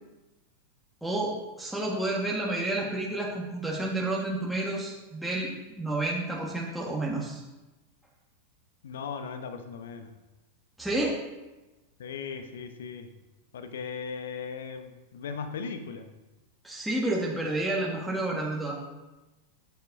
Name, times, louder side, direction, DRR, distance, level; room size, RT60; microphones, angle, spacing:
voice 1, 1.0-7.4 10.8-11.2 16.6-18.8, right 2 dB, ahead, -4 dB, 1.7 m, -30 dB
voice 2, 8.8-10.1 12.0-13.1 13.5-16.1, left 6 dB, 60° left, 8 dB, 1.0 m, -38 dB
13.5 x 9.4 x 2.8 m, 1.1 s
figure-of-eight pair, 90°, 0 cm